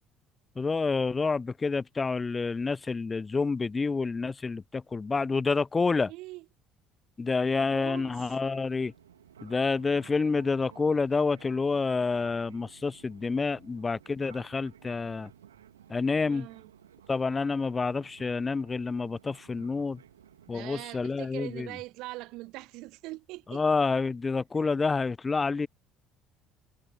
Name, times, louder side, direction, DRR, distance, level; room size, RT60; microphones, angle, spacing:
voice 1, 0.6-6.1 7.2-8.9 9.4-15.3 15.9-16.5 17.1-20.0 20.5-21.7 23.5-25.7, left 4 dB, 25° left, 0.3 m, -28 dB
voice 2, 6.1-6.4 7.6-8.4 16.2-16.7 20.4-23.6, right 20 dB, 60° right, 1.6 m, -42 dB
Fixed-wing aircraft airplane, 8.0-20.7, right 10 dB, 80° right, 2.4 m, -55 dB
figure-of-eight pair, 55°, 0 cm